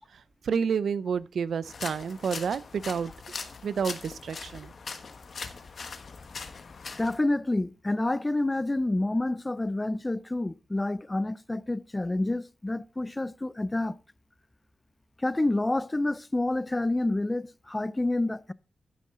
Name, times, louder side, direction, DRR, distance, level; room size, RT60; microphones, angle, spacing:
voice 1, 0.0-3.1 3.6-4.7, right 6 dB, 90° right, 0.5 m, -30 dB
sound 1, 1.6-7.2, left 4 dB, 55° left, 1.2 m, -41 dB
voice 2, 7.0-14.0 15.2-18.5, left 2 dB, 15° left, 0.4 m, -28 dB
10.5 x 9.4 x 3.7 m
wide cardioid pair, 125°, 0 cm